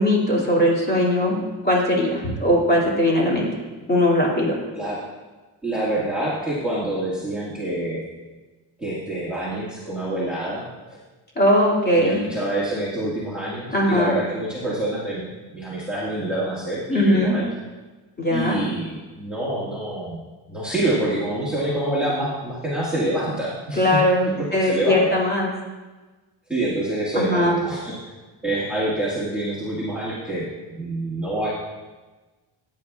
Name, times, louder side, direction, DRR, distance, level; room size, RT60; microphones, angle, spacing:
voice 1, 0.0-1.4 1.6-3.6 3.9-4.6 11.4-12.2 13.7-14.2 16.9-17.4 18.2-18.6 23.8-25.5 27.1-27.6, left 1 dB, 20° left, -4 dB, 2.5 m, -20 dB
voice 2, 5.6-8.0 8.8-11.0 12.0-15.2 15.5-17.4 18.3-20.2 20.5-23.9 24.4-25.0 26.5-27.9 28.4-31.5, right 1 dB, ahead, -9 dB, 1.7 m, -26 dB
15.5 x 9.3 x 2.4 m, 1.2 s
cardioid pair, 165°, 45 cm